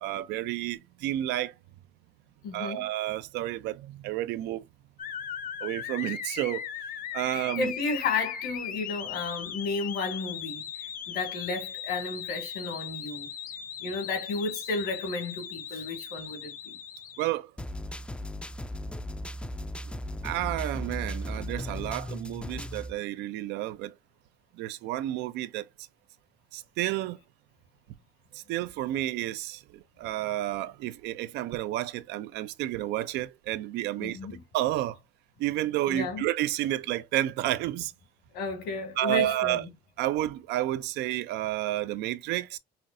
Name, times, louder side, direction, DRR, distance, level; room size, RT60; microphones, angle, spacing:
voice 1, 0.0-1.5 2.5-4.6 5.6-6.7 7.1-7.7 15.7-15.8 17.2-17.5 20.2-23.9 24.6-25.7 26.5-27.2 28.3-34.2 34.5-35.0 35.4-37.9 39.0-39.6 40.0-42.6, right 14 dB, 90° right, 0.5 m, -31 dB
voice 2, 2.4-2.9 7.3-13.3 13.8-16.8 34.0-34.4 35.9-36.3 38.3-39.7, left 3 dB, 85° left, 2.2 m, -33 dB
sound 1, 5.0-17.3, left 8 dB, 55° left, 0.7 m, -38 dB
sound 2, 17.6-22.9, equal, 5° left, 0.3 m, -36 dB
5.6 x 2.4 x 2.5 m
cardioid pair, 110°, 17 cm